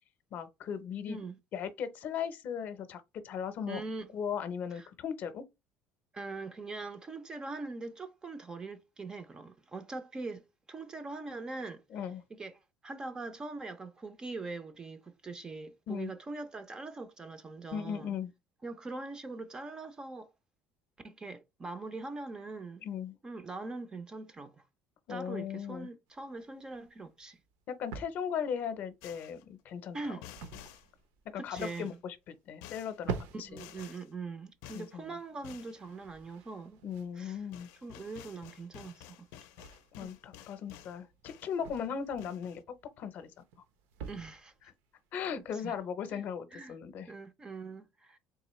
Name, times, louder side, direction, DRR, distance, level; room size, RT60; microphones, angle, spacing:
voice 1, 0.3-1.2 1.5-3.8 4.1-5.4 11.9-12.2 15.9-16.1 17.7-18.3 22.8-23.2 25.1-25.9 27.7-30.2 31.3-33.6 34.7-35.2 36.8-37.7 39.9-43.3 45.1-47.1, left 7 dB, 40° left, 0.6 m, -38 dB
voice 2, 3.7-4.1 4.7-4.9 6.1-11.8 12.3-18.1 18.6-20.3 21.0-22.9 23.2-24.6 25.1-27.4 29.9-30.2 31.3-32.0 33.3-36.8 37.2-37.4 37.8-39.3 40.0-40.2 41.8-42.3 44.1-44.5 45.5-45.7 46.1-46.2 46.5-46.7 47.1-48.2, right 3 dB, 15° right, 0.4 m, -42 dB
sound 1, 26.1-45.8, right 6 dB, 85° right, 0.7 m, -48 dB
sound 2, 29.0-29.4 30.2-30.9 31.6-32.0 32.6-33.0 33.6-34.1 34.6-34.9 35.4-35.8 37.2-37.3 37.5-41.0 41.3-41.9 42.2-42.6, left 12 dB, 85° left, 0.5 m, -51 dB
3.7 x 2.9 x 3.0 m
cardioid pair, 170°, 4 cm